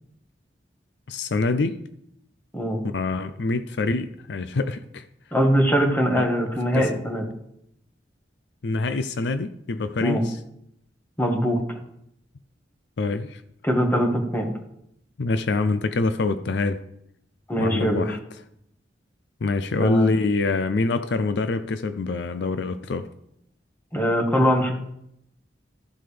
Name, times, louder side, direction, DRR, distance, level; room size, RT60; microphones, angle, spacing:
voice 1, 1.1-1.8 2.8-5.0 6.1-6.3 6.7-6.9 8.6-10.4 13.0-13.4 15.2-16.8 17.6-18.2 19.4-23.1, left 3 dB, 70° left, 0.5 m, -25 dB
voice 2, 5.3-7.2 10.0-10.2 11.2-11.6 13.6-14.5 17.5-18.2 19.8-20.1 23.9-24.7, equal, 10° left, 1.7 m, -22 dB
14.5 x 7.6 x 3.4 m
head